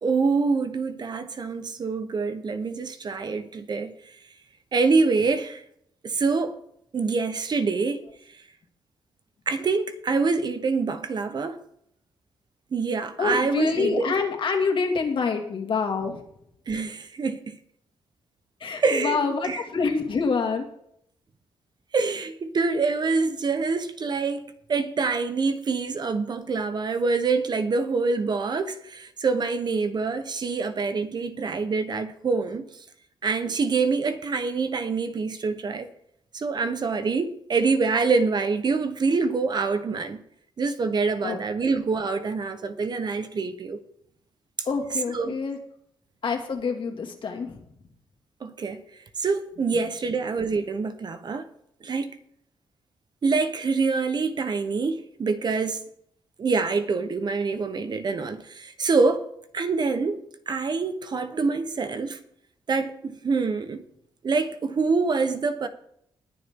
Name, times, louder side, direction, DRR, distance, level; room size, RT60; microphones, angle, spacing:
voice 1, 0.0-3.9 4.7-5.6 6.0-6.6 6.9-8.1 9.5-11.6 12.7-14.1 16.7-17.6 18.8-19.7 21.9-32.8 33.2-35.9 36.3-40.2 40.6-43.8 45.1-45.3 48.4-48.8 49.2-51.5 51.8-52.1 53.2-55.8 56.4-59.3 59.5-62.2 62.7-63.8 64.2-65.7, right 4 dB, 45° right, 1.0 m, -25 dB
voice 2, 13.2-16.2 18.6-20.6 41.2-41.7 44.7-45.6 46.2-47.6, left 5 dB, 55° left, 2.3 m, -26 dB
20.0 x 6.9 x 3.7 m
cardioid pair, 110°, 10 cm